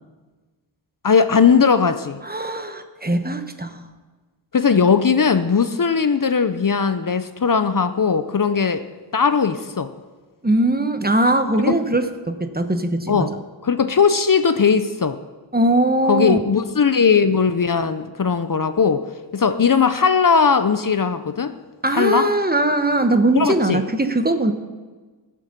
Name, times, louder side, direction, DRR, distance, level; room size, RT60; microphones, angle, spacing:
voice 1, 1.0-2.2 4.5-8.8 9.1-9.9 11.5-11.7 13.1-13.3 13.6-15.2 16.1-19.0 19.3-21.5 21.9-22.3 23.3-23.8, left 6 dB, 45° left, 10 dB, 0.7 m, -18 dB
voice 2, 2.2-3.8 10.4-13.3 15.5-16.4 21.8-24.5, right 1 dB, 20° right, 8 dB, 1.0 m, -20 dB
16.0 x 7.6 x 6.7 m, 1.3 s
wide cardioid pair, 70°, 45 cm